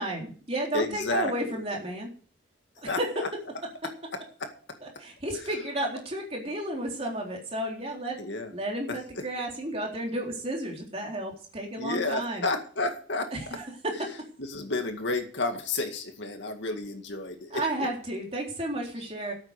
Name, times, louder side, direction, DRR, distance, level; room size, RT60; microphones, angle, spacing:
voice 1, 0.0-2.1 2.8-3.1 4.8-8.2 8.5-12.5 13.3-14.1 17.5-19.3, right 1 dB, 30° right, 0 dB, 3.8 m, -32 dB
voice 2, 0.7-1.6 2.9-3.3 4.4-4.5 8.2-8.5 8.9-9.2 11.8-13.3 14.4-17.6, left 2 dB, 70° left, 5 dB, 2.1 m, -31 dB
12.5 x 8.8 x 6.6 m, 0.43 s
head